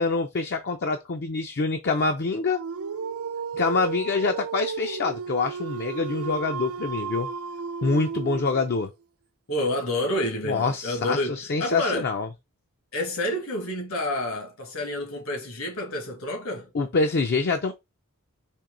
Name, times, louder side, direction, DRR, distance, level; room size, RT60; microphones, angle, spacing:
voice 1, 0.0-2.6 3.5-7.3 7.8-8.9 10.5-12.3 16.7-17.7, left 4 dB, 50° left, 0.5 m, -25 dB
Dog, 2.5-8.8, right 6 dB, 75° right, 0.4 m, -33 dB
voice 2, 9.5-12.1 12.9-16.7, left 1 dB, 70° left, 1.7 m, -29 dB
4.5 x 3.0 x 3.7 m
head